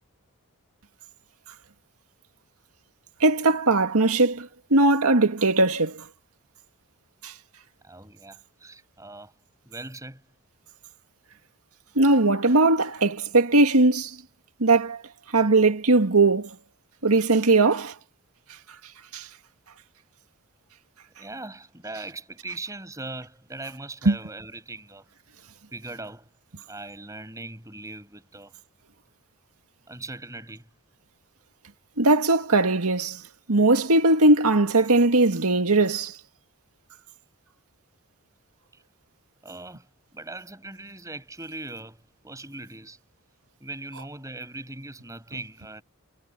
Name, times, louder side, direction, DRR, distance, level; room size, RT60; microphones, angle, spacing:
voice 1, 3.2-6.1 7.2-7.3 12.0-14.2 14.6-15.0 15.3-16.5 17.0-17.9 19.1-19.3 24.1-24.2 32.0-33.2 33.5-36.1, right 2 dB, 85° right, 2.0 m, -20 dB
voice 2, 7.8-9.3 9.7-10.2 21.2-25.1 25.7-26.3 26.7-28.5 29.9-30.7 38.7-38.8 39.4-43.0 43.6-45.8, right 2 dB, 15° right, 7.0 m, -40 dB
head